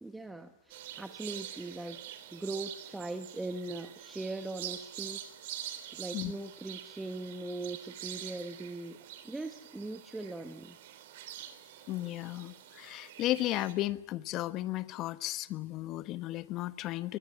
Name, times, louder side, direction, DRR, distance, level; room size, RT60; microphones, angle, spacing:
voice 1, 0.0-5.2 5.9-10.8, right 2 dB, 5° right, 7 dB, 1.2 m, -40 dB
sound 1, 0.7-13.7, right 12 dB, 55° right, 3.5 m, -46 dB
voice 2, 11.9-17.2, left 15 dB, 35° left, 13 dB, 1.2 m, -34 dB
23.5 x 21.0 x 9.6 m, 1.0 s
hypercardioid pair, 115°, 0 cm